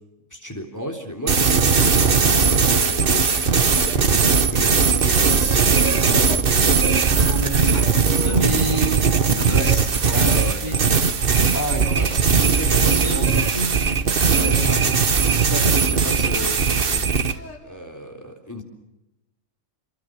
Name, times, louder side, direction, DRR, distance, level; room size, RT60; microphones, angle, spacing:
voice 1, 0.3-6.4 8.3-8.5 8.8-8.9 9.5-9.8 10.1-10.6 11.3-13.3 14.2-14.9 15.4-17.1 17.6-18.6, equal, 15° left, 4 dB, 3.6 m, -32 dB
sound 1, 1.3-17.3, right 5 dB, 45° right, 1.4 m, -19 dB
sound 2, 5.8-6.5 6.9-12.2 12.5-13.4 14.0-14.6 15.0-15.1 15.3-16.2 17.3-17.6, left 2 dB, 65° left, 6.2 m, -39 dB
voice 2, 7.3-7.7 8.2-8.9 9.3-9.9 10.6-10.8 12.6-15.0, right 1 dB, 20° right, 1 dB, 5.8 m, -29 dB
28.5 x 23.5 x 6.5 m, 0.95 s
omnidirectional pair, 1.4 m